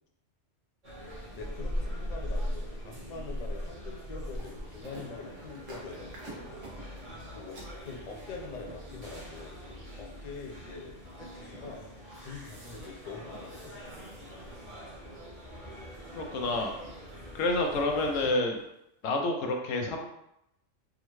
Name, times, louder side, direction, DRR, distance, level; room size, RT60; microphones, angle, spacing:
sound 1, 0.8-18.3, equal, 35° right, 0.8 m, -41 dB
voice 1, 1.3-6.6 7.3-11.8 12.2-13.8, left 4 dB, 50° left, -1 dB, 0.5 m, -44 dB
sound 2, 3.6-9.6 11.1-11.2 11.5-12.9 13.3-13.9 14.2-14.6 15.1-15.4 15.8-16.4 16.8-17.3 17.6-18.1 18.5-18.7 19.1-19.2, right 2 dB, 90° right, 1.3 m, -51 dB
voice 2, 16.2-16.7 17.3-18.6 19.0-20.1, left 2 dB, 80° left, 3 dB, 1.0 m, -28 dB
3.6 x 2.1 x 3.0 m, 0.82 s
omnidirectional pair, 1.3 m